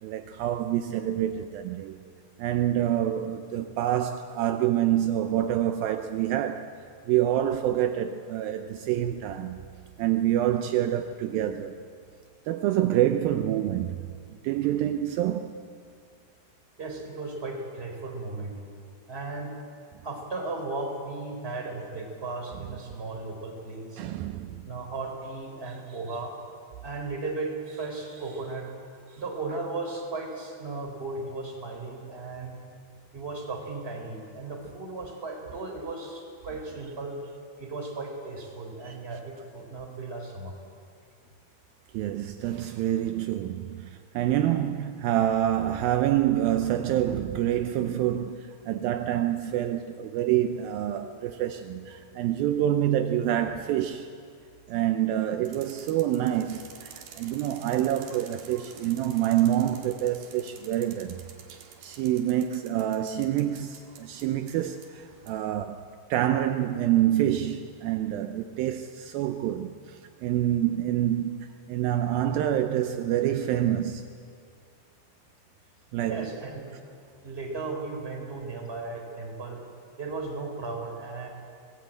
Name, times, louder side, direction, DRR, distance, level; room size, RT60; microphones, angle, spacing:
voice 1, 0.0-2.0 2.4-6.7 7.1-9.6 10.0-11.8 12.5-14.0 14.4-15.6 24.0-24.6 38.8-39.0 41.9-54.1 54.7-61.2 61.5-74.1 75.9-76.3, right 12 dB, 85° right, 2.1 m, -27 dB
voice 2, 16.8-18.5 19.1-19.5 20.0-24.0 24.6-26.3 26.8-28.7 29.1-32.6 33.1-37.2 37.6-40.5 76.1-76.7 77.2-79.6 80.0-81.3, right 3 dB, 15° right, 3.7 m, -36 dB
sound 1, 55.5-65.4, right 7 dB, 65° right, 3.7 m, -49 dB
24.0 x 18.0 x 8.8 m
omnidirectional pair, 5.1 m